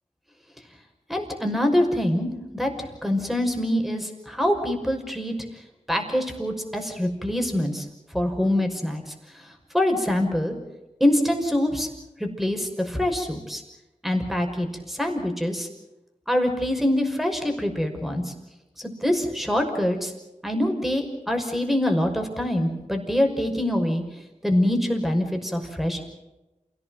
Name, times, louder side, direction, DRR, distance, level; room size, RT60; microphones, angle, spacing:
voice 1, 1.1-5.3 5.9-7.9 8.1-9.1 9.7-10.6 11.0-11.9 12.2-13.6 14.0-15.7 16.3-18.3 18.8-20.1 20.4-24.0 24.4-26.0, left 1 dB, ahead, 4 dB, 5.8 m, -24 dB
28.5 x 18.0 x 7.9 m, 1.0 s
wide cardioid pair, 45°, 13 cm